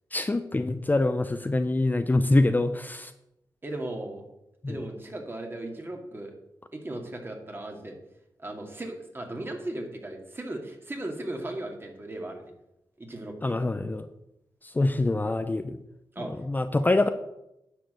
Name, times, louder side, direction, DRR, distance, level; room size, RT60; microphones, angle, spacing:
voice 1, 0.1-3.1 4.6-4.7 13.4-14.1 14.8-15.8 16.5-17.1, left 2 dB, 25° left, 10 dB, 0.6 m, -25 dB
voice 2, 3.6-4.2 4.7-6.3 6.7-7.9 8.4-12.5 13.0-13.6 16.1-16.3, right 1 dB, 30° right, 3 dB, 2.2 m, -37 dB
10.5 x 4.8 x 7.7 m, 0.86 s
cardioid pair, 70°, 7 cm